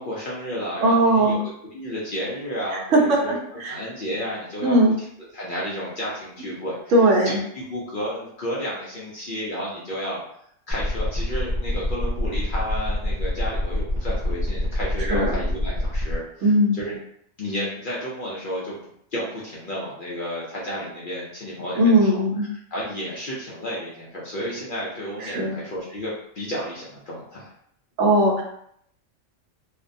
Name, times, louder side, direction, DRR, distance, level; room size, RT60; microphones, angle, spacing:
voice 1, 0.0-3.4 3.7-4.7 5.3-6.8 7.2-10.2 10.7-17.0 17.4-18.7 19.1-22.2 22.7-27.5, equal, 55° left, -6 dB, 0.6 m, -32 dB
voice 2, 0.8-1.4 2.7-3.8 4.6-5.0 6.9-7.4 15.1-15.4 16.4-16.7 21.8-22.5 25.2-25.6 28.0-28.4, right 1 dB, 70° right, 0 dB, 0.9 m, -19 dB
sound 1, 10.7-16.1, left 1 dB, 25° right, 1.3 m, -26 dB
2.5 x 2.2 x 2.5 m, 0.70 s
omnidirectional pair, 1.3 m